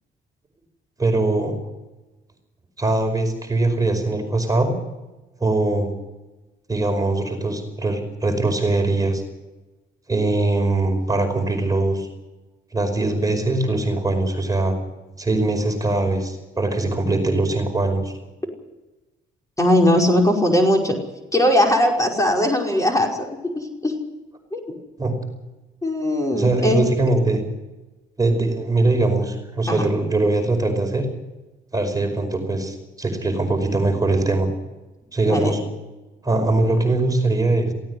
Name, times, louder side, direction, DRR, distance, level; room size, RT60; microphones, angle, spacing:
voice 1, 1.0-1.6 2.8-4.8 5.4-5.9 6.7-9.2 10.1-12.1 12.7-14.7 15.2-18.1 25.0-25.1 26.3-27.4 28.2-31.1 31.7-34.5 35.1-35.6 36.2-37.7, right 2 dB, 20° right, 5 dB, 5.2 m, -21 dB
voice 2, 19.6-21.0 21.3-23.3 23.6-23.9 24.5-24.6 25.8-26.8 29.7-29.8 35.3-35.5, left 1 dB, 15° left, 0 dB, 5.3 m, -19 dB
18.0 x 17.0 x 9.6 m, 1.1 s
cardioid pair, 90°, 20 cm